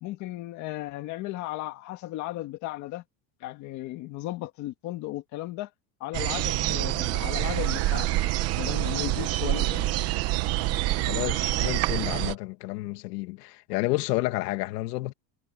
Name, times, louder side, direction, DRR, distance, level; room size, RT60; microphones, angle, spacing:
voice 1, 0.0-3.0 3.4-5.7 6.0-8.1 8.6-9.9, left 16 dB, 35° left, 1.9 m, -35 dB
sound 1, 6.1-12.3, right 16 dB, 30° right, 0.9 m, -26 dB
voice 2, 11.1-15.1, left 19 dB, 70° left, 2.1 m, -30 dB
supercardioid pair, 175°, 50 cm